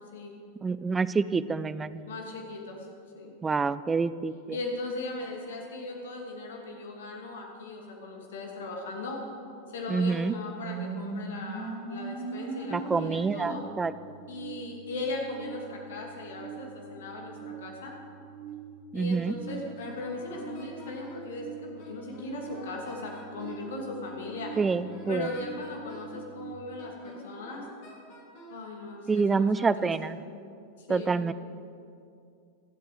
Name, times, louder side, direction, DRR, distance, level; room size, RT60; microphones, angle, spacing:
voice 1, 0.6-2.1 3.4-4.3 9.9-10.3 12.7-13.9 18.9-19.3 24.6-25.3 29.1-30.2 30.9-31.3, right 4 dB, 15° right, 16 dB, 0.4 m, -27 dB
voice 2, 2.1-2.8 3.2-3.3 4.5-9.2 9.7-13.6 14.3-17.9 18.9-24.5 25.1-27.6 28.5-30.1 30.8-31.1, left 2 dB, 60° left, 1 dB, 2.5 m, -38 dB
sound 1, 10.6-26.5, right 4 dB, 40° right, 1.7 m, -42 dB
Wind instrument woodwind instrument, 19.5-21.3 21.8-23.7 24.2-26.2 26.8-28.6, left 1 dB, 45° left, 3.2 m, -49 dB
23.5 x 7.9 x 5.1 m, 2.5 s
figure-of-eight pair, 90°, 0 cm